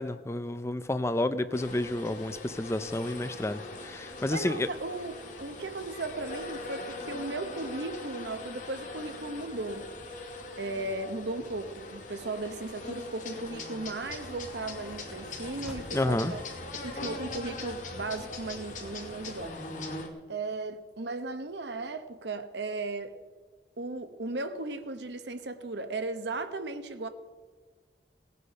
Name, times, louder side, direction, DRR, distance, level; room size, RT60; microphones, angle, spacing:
voice 1, 0.0-4.7 15.9-16.3, left 1 dB, 15° left, 0.5 m, -30 dB
sound 1, 1.5-20.1, left 2 dB, 45° left, 1.7 m, -41 dB
voice 2, 4.3-9.9 10.6-16.4 16.8-19.6 20.3-23.1 23.8-27.1, right 2 dB, 80° right, 1.0 m, -36 dB
sound 2, 14.1-19.5, equal, 5° right, 2.4 m, -47 dB
18.0 x 8.2 x 5.6 m
head